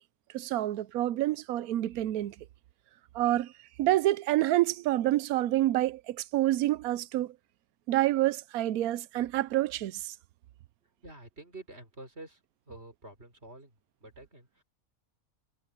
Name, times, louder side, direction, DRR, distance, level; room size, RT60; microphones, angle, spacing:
voice 1, 0.3-2.3 3.1-3.5 3.8-7.3 7.9-10.1, right 15 dB, 85° right, 1.1 m, -28 dB
voice 2, 11.0-12.4 12.7-14.6, right 2 dB, 45° right, 4.8 m, -48 dB
omnidirectional pair, 1.5 m